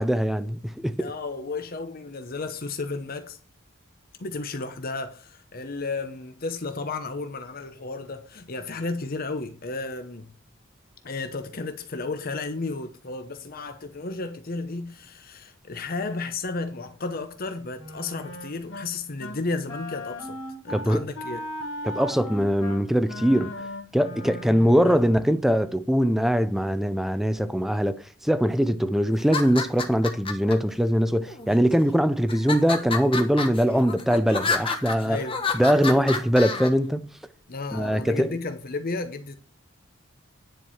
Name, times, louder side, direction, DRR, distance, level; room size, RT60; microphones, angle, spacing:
voice 1, 0.0-1.1 20.7-21.1 21.8-23.5 23.9-35.2 35.5-37.0 37.7-38.3, equal, ahead, 0.5 m, -22 dB
voice 2, 1.0-3.4 4.2-10.3 11.0-20.4 20.6-21.4 24.8-25.0 35.0-35.4 37.5-39.3, left 3 dB, 45° left, 0.8 m, -33 dB
Wind instrument woodwind instrument, 17.7-18.9 19.2-19.4 19.7-25.0, left 1 dB, 85° left, 2.7 m, -37 dB
sound 1, 29.2-30.5 31.3-31.8 32.3-36.7, left 4 dB, 25° left, 1.4 m, -29 dB
10.0 x 4.7 x 7.1 m
head